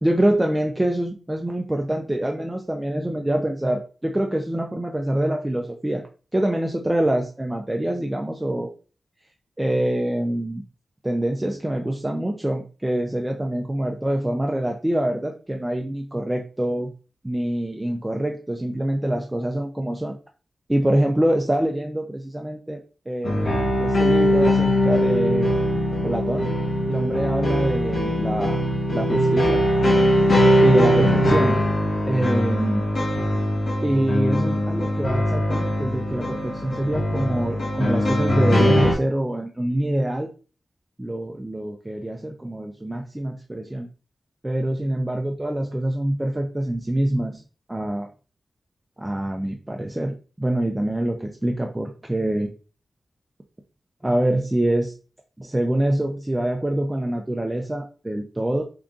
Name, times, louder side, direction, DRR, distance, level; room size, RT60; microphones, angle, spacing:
voice 1, 0.0-6.0 6.3-8.7 9.6-10.6 11.0-16.9 17.2-20.2 20.7-23.5 23.8-25.5 26.0-26.5 26.9-28.6 28.9-29.6 30.6-31.6 32.1-32.9 33.8-40.3 41.0-43.9 44.4-47.4 47.7-48.1 49.0-52.5 54.0-54.9 55.4-58.6, right 1 dB, 10° right, 2 dB, 0.4 m, -25 dB
sound 1, 23.2-38.9, equal, 80° left, 1.0 m, -21 dB
3.7 x 3.7 x 2.3 m, 0.36 s
wide cardioid pair, 150°, 0 cm